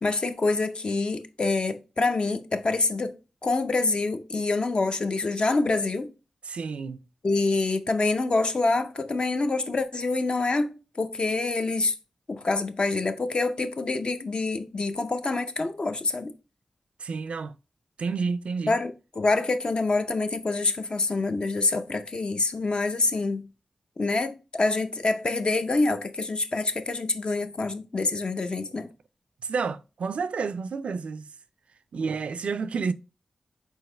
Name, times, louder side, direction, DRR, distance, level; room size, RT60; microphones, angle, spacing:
voice 1, 0.0-3.1 3.4-6.1 7.2-11.9 12.3-16.3 18.7-23.5 24.0-28.9, left 3 dB, 55° left, 0.6 m, -26 dB
voice 2, 6.5-7.0 17.0-17.5 18.0-18.7 29.4-31.3 31.9-32.9, right 5 dB, 80° right, 0.3 m, -30 dB
4.6 x 3.6 x 3.2 m
cardioid pair, 45°, 2 cm